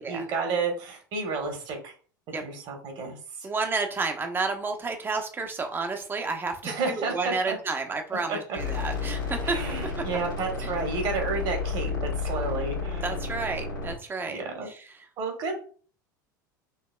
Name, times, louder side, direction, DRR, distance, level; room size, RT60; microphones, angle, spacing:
voice 1, 0.0-1.9 2.4-3.5 6.6-7.6 8.3-8.6 9.4-13.0 14.3-14.7 15.2-15.5, right 4 dB, 50° right, 3 dB, 1.5 m, -31 dB
voice 2, 3.4-9.6 10.6-10.7 13.0-15.1, right 4 dB, 20° right, 5 dB, 0.8 m, -31 dB
sound 1, 8.6-13.9, left 4 dB, 90° left, 1.6 m, -31 dB
5.4 x 2.8 x 2.3 m, 0.42 s
figure-of-eight pair, 75°, 11 cm